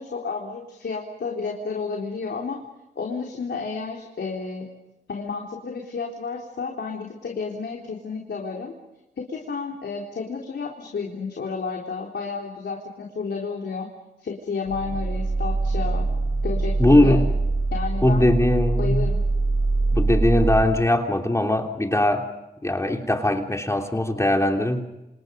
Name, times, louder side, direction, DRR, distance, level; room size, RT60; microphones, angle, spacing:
voice 1, 0.0-2.6 3.0-4.7 5.1-8.7 9.2-13.9 14.2-16.1 16.4-17.2 17.7-18.3 18.8-19.2, left 5 dB, 80° left, -1 dB, 4.0 m, -31 dB
sound 1, 14.7-20.6, right 3 dB, 25° right, 4.9 m, -23 dB
voice 2, 16.8-17.3 18.0-19.1 19.9-22.3 22.6-24.8, left 1 dB, 15° left, 3 dB, 3.1 m, -20 dB
28.5 x 28.0 x 5.4 m, 0.97 s
cardioid pair, 65°, 18 cm